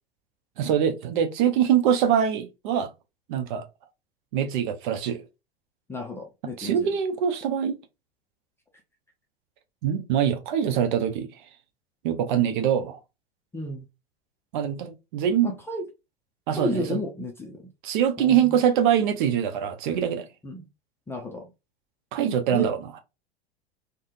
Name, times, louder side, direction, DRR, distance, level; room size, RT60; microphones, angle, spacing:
voice 1, 0.6-2.9 3.3-3.6 4.3-5.2 6.6-7.8 9.8-11.3 12.0-13.0 14.5-15.6 16.5-16.8 17.8-20.3 22.1-22.9, right 9 dB, 50° right, 0.8 m, -23 dB
voice 2, 5.9-6.9 13.5-13.8 15.4-15.8 16.6-17.7 18.2-18.6 20.4-20.7 21.1-21.5 22.5-22.7, left 1 dB, 10° left, 0.5 m, -32 dB
3.5 x 2.2 x 2.7 m
figure-of-eight pair, 90°, 31 cm